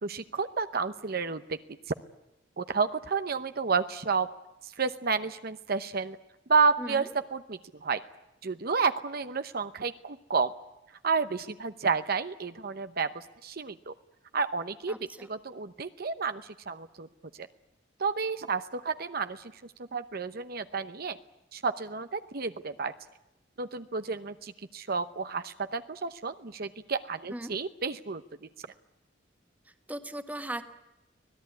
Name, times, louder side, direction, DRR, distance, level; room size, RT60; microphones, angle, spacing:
voice 1, 0.0-1.6 2.6-4.3 4.6-6.2 6.5-8.0 8.4-10.5 11.0-13.9 14.3-15.0 15.3-17.1 17.4-17.5 18.0-19.4 19.8-21.2 21.5-22.9 23.6-28.2, right 5 dB, 55° right, 10 dB, 0.9 m, -30 dB
voice 2, 14.9-15.3 27.3-27.6 29.9-30.6, right 1 dB, 10° right, 7 dB, 1.6 m, -38 dB
25.5 x 18.0 x 9.7 m, 0.93 s
head